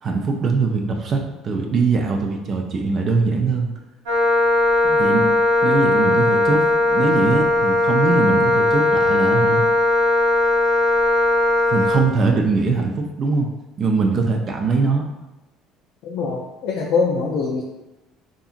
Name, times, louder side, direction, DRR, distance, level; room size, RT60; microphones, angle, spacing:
voice 1, 0.0-3.7 5.0-5.3 5.6-9.6 11.7-13.5 13.8-15.1, right 4 dB, 45° right, 2 dB, 0.4 m, -21 dB
Wind instrument woodwind instrument, 4.1-12.1, left 2 dB, 85° right, 0.7 m, -18 dB
voice 2, 16.0-17.6, left 4 dB, 70° left, -3 dB, 0.4 m, -23 dB
2.7 x 2.5 x 2.4 m, 0.99 s
supercardioid pair, 80°, 0 cm